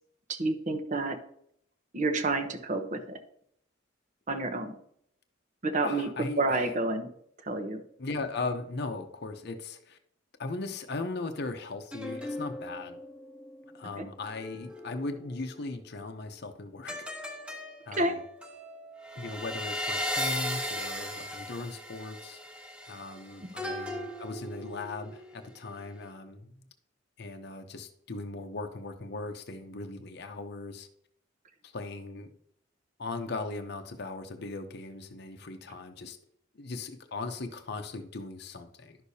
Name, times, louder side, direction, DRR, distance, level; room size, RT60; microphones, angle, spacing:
voice 1, 0.3-1.2 1.9-3.2 4.3-4.8 5.6-7.1 7.4-7.8 14.0-14.1 18.0-18.1, right 2 dB, 40° right, 8 dB, 0.9 m, -29 dB
voice 2, 5.8-6.7 8.0-10.0 10.4-13.0 13.7-17.1 17.9-18.2 19.2-22.4 22.9-26.6 27.2-30.9 31.6-32.4 33.0-36.2 36.5-39.0, left 3 dB, 55° left, 6 dB, 0.8 m, -38 dB
sound 1, 11.9-15.5 16.9-25.4 25.8-26.1, left 1 dB, 5° right, 1.2 m, -38 dB
11.0 x 6.5 x 2.8 m, 0.70 s
head